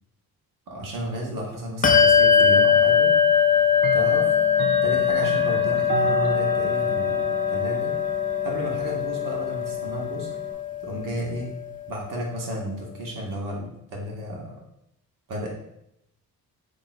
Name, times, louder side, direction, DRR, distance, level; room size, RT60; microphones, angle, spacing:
voice 1, 0.7-3.1 3.9-4.3 4.8-7.9 8.4-10.3 10.8-11.5 11.9-14.5 15.3-15.5, equal, 60° right, -2 dB, 1.2 m, -33 dB
Bell, 1.8-11.8, left 7 dB, 25° left, 0.4 m, -21 dB
Clock, 2.4-2.5 3.8-10.5, right 3 dB, 30° right, 0.5 m, -32 dB
3.6 x 2.5 x 4.1 m, 0.81 s
cardioid pair, 85°, 37 cm